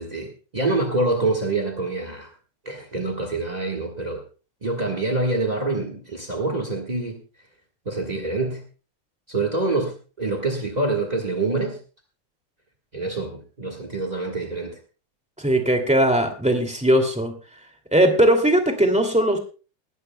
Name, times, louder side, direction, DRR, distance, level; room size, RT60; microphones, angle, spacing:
voice 1, 0.0-2.3 2.6-4.2 4.6-7.2 7.8-8.6 9.3-11.8 12.9-14.8, right 2 dB, 30° right, 3 dB, 0.7 m, -26 dB
voice 2, 15.4-17.3 17.9-19.4, right 1 dB, 5° right, 4 dB, 1.9 m, -19 dB
20.0 x 15.0 x 2.3 m, 0.35 s
omnidirectional pair, 3.4 m